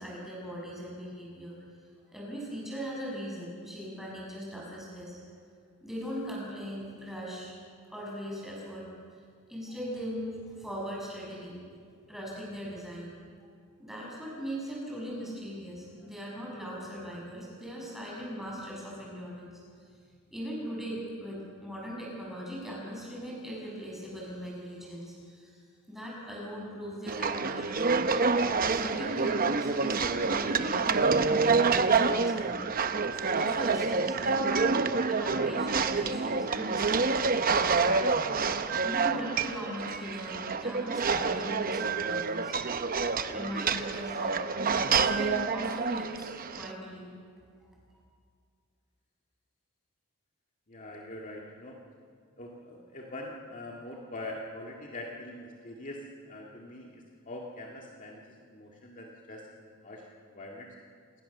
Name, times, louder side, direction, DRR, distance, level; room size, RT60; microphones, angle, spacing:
voice 1, 0.0-1.6 2.1-5.2 5.8-7.5 7.9-8.9 9.5-11.6 12.1-13.1 13.8-19.6 20.3-25.6 25.9-28.1 28.7-32.6 33.1-34.8 35.1-38.0 38.3-42.5 43.3-44.4 44.8-46.3 46.5-47.1, equal, ahead, -4 dB, 7.2 m, -39 dB
sound 1, 27.1-46.7, right 4 dB, 40° right, 0.9 m, -27 dB
voice 2, 50.7-51.8 52.4-60.7, left 1 dB, 40° left, -1 dB, 2.1 m, -43 dB
27.5 x 19.5 x 6.8 m, 2.1 s
head